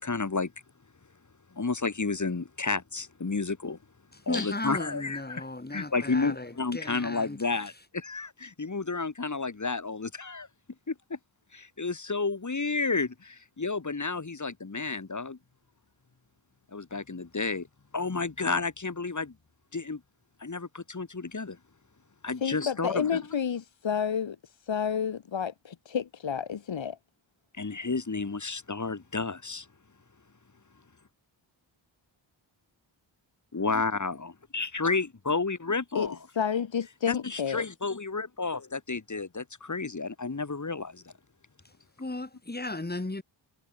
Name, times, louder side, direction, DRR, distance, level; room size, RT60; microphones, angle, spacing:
voice 1, 0.0-0.5 1.5-3.8 4.3-5.4 5.7-10.5 10.9-11.2 11.5-15.4 16.7-17.7 17.9-19.3 19.7-20.0 20.4-21.6 22.2-23.2 27.6-29.7 33.5-36.2 37.1-41.1, left 4 dB, 40° left, 4.5 m, -31 dB
voice 2, 4.3-7.4 41.6-41.7 42.0-43.2, left 2 dB, 20° left, 3.9 m, -35 dB
voice 3, 22.4-27.0 35.9-36.1 36.4-37.6, left 7 dB, 70° left, 2.1 m, -30 dB
wide cardioid pair, 90°, 47 cm